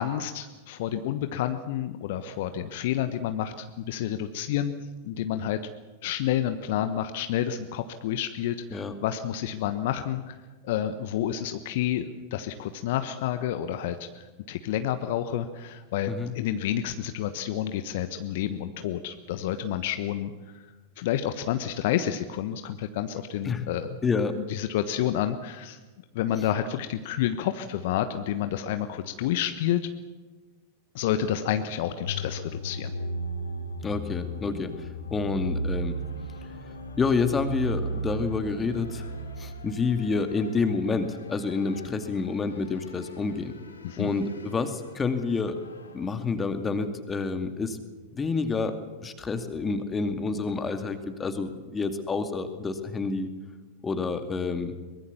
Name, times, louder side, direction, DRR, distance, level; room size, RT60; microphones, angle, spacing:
voice 1, 0.0-4.7 5.0-5.6 6.0-10.4 10.6-20.7 21.0-24.0 24.5-25.8 26.1-29.8 30.9-32.9 43.8-44.1, left 11 dB, 50° left, 9 dB, 1.2 m, -29 dB
voice 2, 24.0-24.4 33.8-36.0 37.0-39.0 39.4-43.5 44.0-45.6 45.9-47.8 48.1-53.3 53.8-54.7, left 4 dB, 15° left, 8 dB, 2.4 m, -28 dB
Mysterious Horror Theme Song, 32.0-46.1, right 1 dB, 75° left, 3.6 m, -37 dB
23.0 x 21.5 x 7.0 m, 1.3 s
figure-of-eight pair, 90°, 0 cm